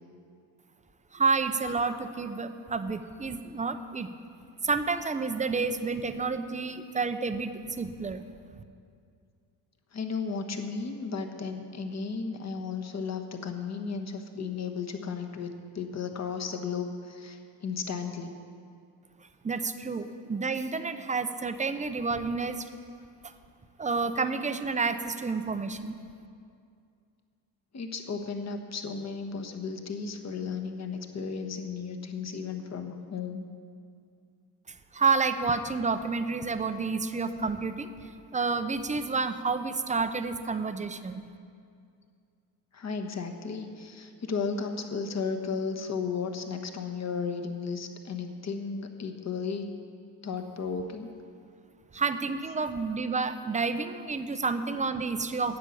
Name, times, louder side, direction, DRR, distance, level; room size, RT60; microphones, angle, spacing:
voice 1, 1.1-4.1 4.6-8.2 8.5-8.6 19.4-22.7 23.2-23.3 23.8-25.9 34.9-41.2 51.9-55.6, right 4 dB, 15° right, 10 dB, 0.6 m, -30 dB
voice 2, 9.9-18.3 27.7-33.5 42.7-49.7 50.2-51.1, left 5 dB, 35° left, 5 dB, 1.2 m, -34 dB
10.0 x 7.4 x 8.3 m, 2.3 s
cardioid pair, 90°, 45 cm